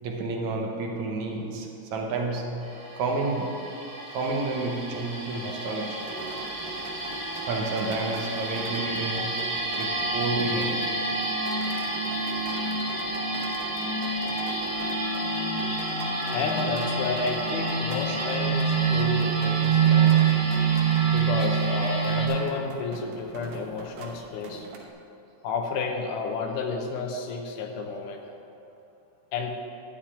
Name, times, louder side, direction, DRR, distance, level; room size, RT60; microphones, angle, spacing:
voice 1, 0.0-6.1 7.5-11.0, right 3 dB, 65° right, 1 dB, 2.1 m, -30 dB
sound 1, 2.6-22.3, right 5 dB, 35° right, 3.0 m, -27 dB
sound 2, 6.0-24.9, right 3 dB, 85° right, 2.8 m, -42 dB
voice 2, 16.3-20.3 21.1-24.7 25.4-28.2 29.3-29.6, left 4 dB, 75° left, 3 dB, 2.4 m, -31 dB
12.0 x 5.2 x 8.5 m, 2.9 s
omnidirectional pair, 3.9 m